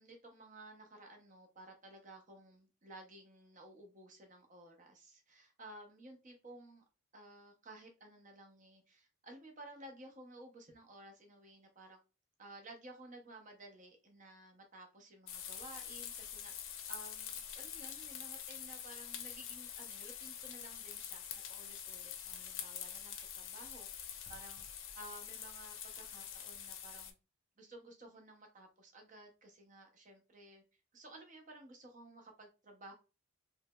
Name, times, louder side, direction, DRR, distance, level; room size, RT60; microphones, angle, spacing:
voice 1, 0.0-6.8 7.1-12.0 12.4-27.1 27.6-30.6 30.9-32.9, right 2 dB, 35° right, 3 dB, 0.7 m, -55 dB
sound 1, 15.3-27.1, left 9 dB, 65° left, 0.5 m, -46 dB
3.2 x 2.9 x 2.2 m, 0.31 s
head